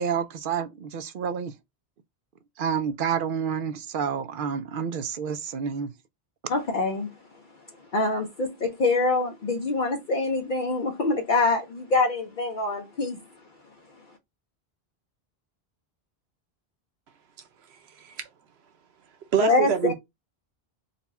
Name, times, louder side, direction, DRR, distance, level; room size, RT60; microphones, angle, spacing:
voice 1, 0.0-1.5 2.6-5.9, right 7 dB, 65° right, 0.7 m, -29 dB
voice 2, 6.5-7.1 7.9-13.2 19.4-19.7, left 3 dB, 55° left, 0.7 m, -25 dB
voice 3, 17.7-18.3 19.3-19.9, right 7 dB, 90° right, 1.0 m, -26 dB
4.1 x 2.2 x 4.1 m
omnidirectional pair, 1.0 m